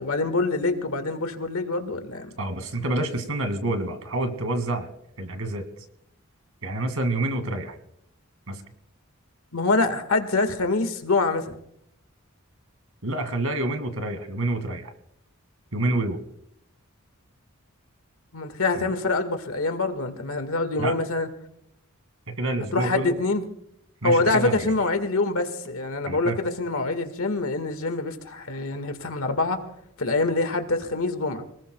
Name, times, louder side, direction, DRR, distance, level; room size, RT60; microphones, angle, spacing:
voice 1, 0.0-2.3 9.5-11.6 18.3-21.3 22.7-23.4 24.0-29.6 30.0-31.4, left 3 dB, 75° left, 8 dB, 1.7 m, -25 dB
voice 2, 2.4-4.9 5.2-5.6 6.6-7.8 8.5-8.6 13.0-14.9 15.7-16.2 18.8-18.9 20.8-21.0 22.3-23.2 24.0-24.7 26.1-26.4, right 2 dB, 85° right, 7 dB, 2.1 m, -28 dB
27.5 x 19.0 x 2.3 m, 0.74 s
head